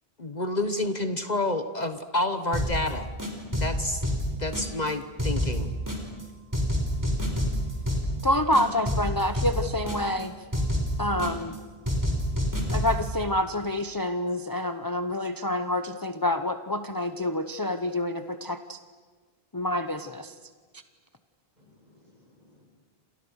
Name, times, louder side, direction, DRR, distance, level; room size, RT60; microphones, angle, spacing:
voice 1, 0.2-3.1 3.6-4.0 4.4-5.7, left 2 dB, 45° left, 10 dB, 1.4 m, -29 dB
sound 1, 2.5-2.9 3.2-4.9 5.2-6.2 6.5-8.2 8.5-10.2 10.5-11.6 11.8-13.1, equal, 20° right, 4.8 m, -28 dB
voice 2, 6.8-8.2 21.6-22.7, left 1 dB, 45° right, -1 dB, 8.2 m, -59 dB
voice 3, 8.2-10.3 11.0-11.6 12.7-18.8 19.5-20.3, left 1 dB, 20° left, 9 dB, 0.9 m, -27 dB
29.5 x 28.0 x 6.5 m, 1.4 s
omnidirectional pair, 1.0 m